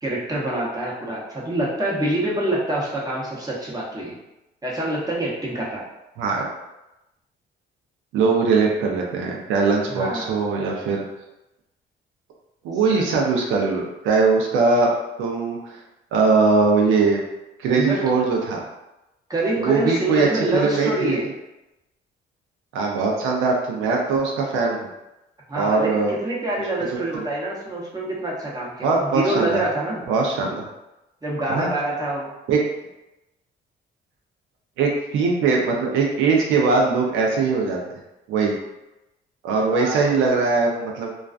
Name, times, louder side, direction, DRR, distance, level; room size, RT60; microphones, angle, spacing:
voice 1, 0.0-4.2 4.6-5.8 9.9-10.4 12.9-13.0 17.7-18.0 19.3-21.3 25.5-30.0 31.2-32.3 39.8-40.1, right 1 dB, 20° right, -5 dB, 0.8 m, -26 dB
voice 2, 8.1-11.0 12.6-14.9 15.2-15.8 16.1-17.2 17.6-18.6 19.6-21.2 22.7-24.9 25.5-26.1 26.9-27.2 28.8-29.6 30.1-30.7 31.5-31.7 32.5-32.6 34.8-38.0 38.3-38.5 39.4-41.1, right 4 dB, 85° right, -1 dB, 0.5 m, -21 dB
2.3 x 2.3 x 2.3 m, 0.95 s
cardioid pair, 90°, 20 cm